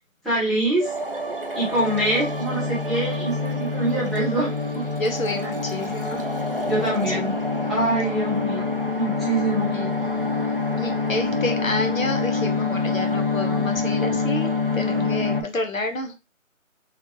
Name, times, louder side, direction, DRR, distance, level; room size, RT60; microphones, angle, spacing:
voice 1, 0.2-0.9 1.6-4.5 4.7-4.8 6.7-7.3 7.7-8.6 9.0-9.7, right 1 dB, ahead, -10 dB, 0.6 m, -24 dB
sound 1, 0.8-15.4, left 3 dB, 45° right, 0.4 m, -26 dB
voice 2, 5.0-6.2 6.9-7.3 9.7-9.9 10.8-16.1, left 2 dB, 75° left, 5 dB, 1.1 m, -29 dB
3.3 x 3.2 x 2.8 m, 0.27 s
figure-of-eight pair, 170°, 41 cm